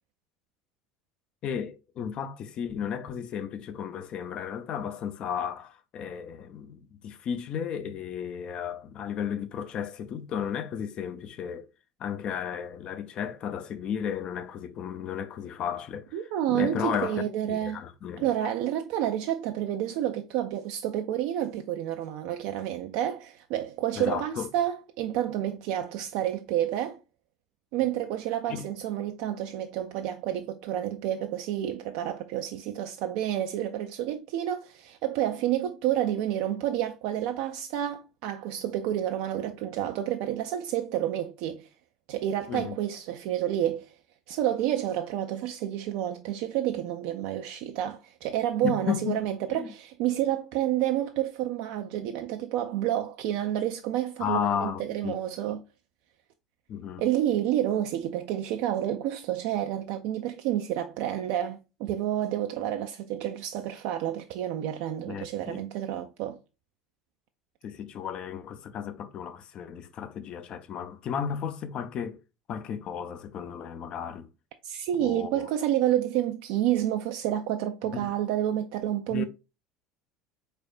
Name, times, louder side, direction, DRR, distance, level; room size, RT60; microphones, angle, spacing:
voice 1, 1.4-11.7 12.0-16.2 16.5-17.2 17.5-18.3 24.0-24.5 28.5-28.7 42.5-42.7 48.6-49.2 49.5-49.7 54.2-55.2 56.7-57.0 65.1-65.6 67.6-72.2 72.5-74.3 75.0-75.5 77.9-78.1 79.1-79.2, left 8 dB, 50° left, 0.5 m, -34 dB
voice 2, 16.1-17.8 18.2-27.0 27.7-41.7 42.1-44.0 44.3-55.6 57.0-66.4 74.6-79.2, right 11 dB, 65° right, 0.4 m, -29 dB
4.0 x 3.3 x 2.5 m
hypercardioid pair, 75°, 2 cm